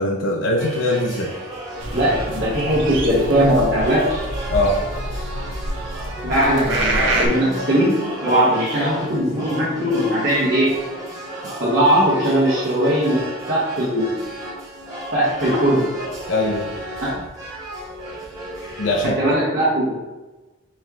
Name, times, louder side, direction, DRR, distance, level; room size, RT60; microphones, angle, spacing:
voice 1, 0.0-1.3 4.5-4.8 16.3-16.7 18.8-19.1, left 1 dB, 65° left, 0 dB, 0.5 m, -21 dB
sound 1, 0.6-19.1, right 1 dB, 15° right, 1.2 m, -33 dB
sound 2, 1.8-7.3, right 1 dB, 65° right, 0.8 m, -26 dB
voice 2, 1.9-4.2 6.2-10.8 11.6-14.2 15.1-15.9 17.0-17.3 19.0-20.0, equal, 45° right, -8 dB, 1.2 m, -19 dB
4.4 x 3.2 x 3.6 m, 1.2 s
head